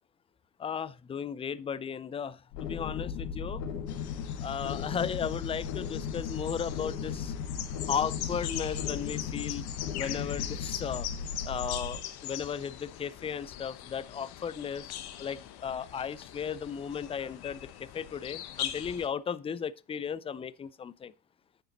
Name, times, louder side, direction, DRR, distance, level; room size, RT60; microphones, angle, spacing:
voice 1, 0.6-3.6 4.4-7.3 7.9-9.7 10.0-11.1 11.5-14.9 15.2-21.1, left 7 dB, 15° left, 0.4 m, -35 dB
sound 1, 2.5-12.0, left 7 dB, 70° left, 1.9 m, -36 dB
sound 2, 3.9-19.1, left 12 dB, 50° left, 1.4 m, -41 dB
9.5 x 6.7 x 4.1 m
hypercardioid pair, 80°, 50 cm